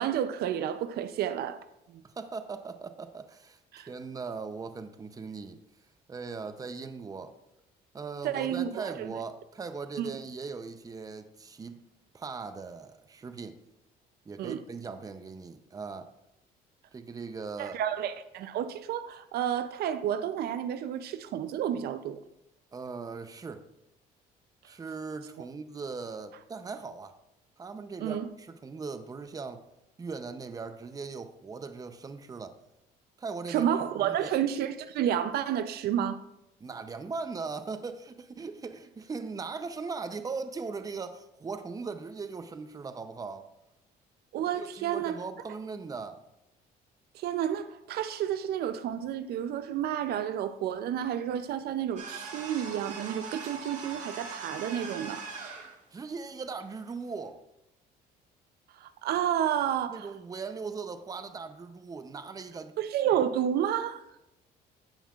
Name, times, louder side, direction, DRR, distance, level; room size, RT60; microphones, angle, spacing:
voice 1, 0.0-1.6 3.7-3.9 8.2-9.1 10.0-10.2 14.4-14.6 17.6-22.2 28.0-28.3 33.5-36.2 44.3-45.2 47.1-55.3 58.8-60.1 62.8-64.0, right 10 dB, 70° right, 0.5 m, -30 dB
voice 2, 2.0-5.6 6.1-7.4 7.9-11.8 12.1-13.6 14.3-16.1 16.9-17.8 22.7-23.7 24.6-27.1 27.6-29.6 30.0-32.6 33.2-33.7 34.0-34.3 36.6-43.5 44.5-46.2 55.9-57.4 59.9-62.7, right 4 dB, 20° right, 0.6 m, -39 dB
sound 1, 52.0-55.8, right 4 dB, 45° right, 1.9 m, -41 dB
16.0 x 5.6 x 2.4 m
cardioid pair, 110°, 17 cm